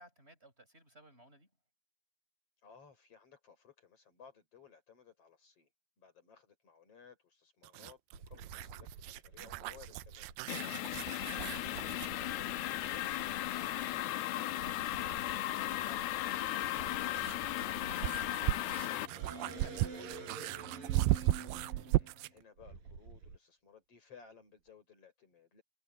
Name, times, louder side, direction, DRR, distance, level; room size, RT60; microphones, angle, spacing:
voice 1, 0.0-1.5 10.6-11.0 17.7-20.7, right 1 dB, 15° right, 6.3 m, -59 dB
voice 2, 2.6-5.7 6.0-10.3 15.6-17.1 21.9-25.6, left 7 dB, 35° left, 5.8 m, -59 dB
sound 1, 7.6-12.2 14.5-14.6 16.6-22.4, right 17 dB, 80° right, 2.1 m, -36 dB
sound 2, 8.1-10.4 11.5-14.1 14.6-23.4, right 4 dB, 60° right, 7.5 m, -50 dB
sound 3, 10.5-19.1, left 14 dB, 80° left, 2.9 m, -36 dB
omnidirectional pair, 4.6 m